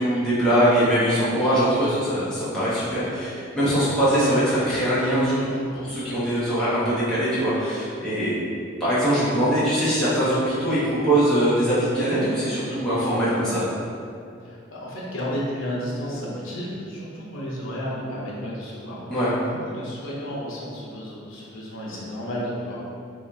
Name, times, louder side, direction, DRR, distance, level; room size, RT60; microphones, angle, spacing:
voice 1, 0.0-8.4 8.8-13.6 19.1-19.3, right 1 dB, 5° left, -12 dB, 1.0 m, -22 dB
voice 2, 14.4-19.0 19.4-22.8, equal, 80° left, -5 dB, 0.9 m, -32 dB
3.1 x 2.4 x 3.8 m, 2.4 s
head